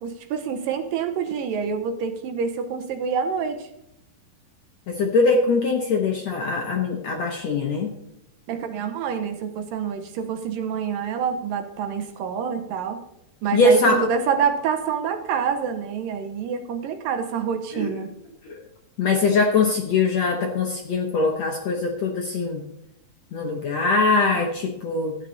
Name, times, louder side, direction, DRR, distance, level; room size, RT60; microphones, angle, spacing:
voice 1, 0.0-3.7 8.5-13.0 13.4-18.1, right 6 dB, 70° right, 7 dB, 2.5 m, -27 dB
voice 2, 4.9-7.9 13.5-14.0 17.7-17.9 18.5-18.6 19.0-22.6 23.3-25.2, left 3 dB, 65° left, 2 dB, 1.8 m, -22 dB
13.0 x 8.9 x 4.0 m, 0.81 s
omnidirectional pair, 4.4 m